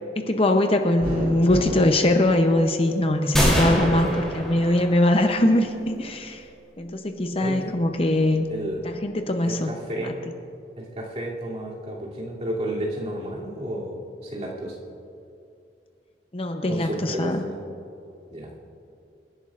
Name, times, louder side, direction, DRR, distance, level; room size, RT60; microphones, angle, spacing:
voice 1, 0.2-6.4 6.8-8.4 8.8-9.7 10.0-10.1 16.3-17.4, left 1 dB, 35° left, 5 dB, 0.7 m, -22 dB
sound 1, 1.0-2.9 3.5-4.8 5.2-6.1, equal, 60° right, 1.8 m, -32 dB
sound 2, 3.3-5.2, equal, 5° left, 3.3 m, -24 dB
voice 2, 7.4-7.7 8.5-8.8 9.4-10.2 10.8-14.8 16.7-17.7 18.3-18.6, right 1 dB, 40° right, -6 dB, 2.8 m, -32 dB
27.5 x 11.0 x 2.5 m, 2.6 s
head